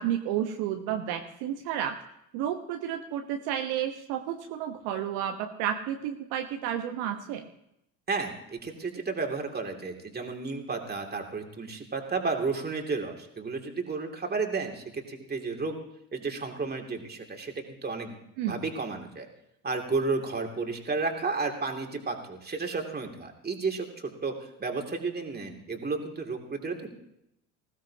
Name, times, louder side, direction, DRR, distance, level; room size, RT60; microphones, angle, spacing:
voice 1, 0.0-2.0 2.3-7.5 18.4-18.6, right 10 dB, 60° right, 5 dB, 1.2 m, -31 dB
voice 2, 8.1-15.8 16.1-18.2 18.5-19.3 19.6-24.3 24.6-26.9, right 4 dB, 20° right, 3 dB, 2.7 m, -32 dB
20.0 x 16.0 x 2.9 m, 0.81 s
hypercardioid pair, 65°, 44 cm